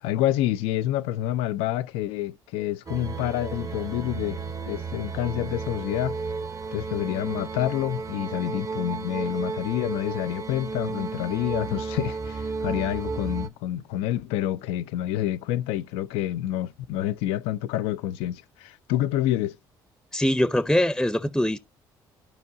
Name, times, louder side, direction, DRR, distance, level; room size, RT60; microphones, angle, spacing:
voice 1, 0.0-6.2 6.7-19.6, left 13 dB, 85° left, 0.4 m, -28 dB
sound 1, 2.9-13.5, right 4 dB, 35° right, 0.8 m, -33 dB
voice 2, 20.1-21.6, left 1 dB, 5° left, 0.6 m, -22 dB
13.5 x 4.6 x 2.7 m
supercardioid pair, 65°, 10 cm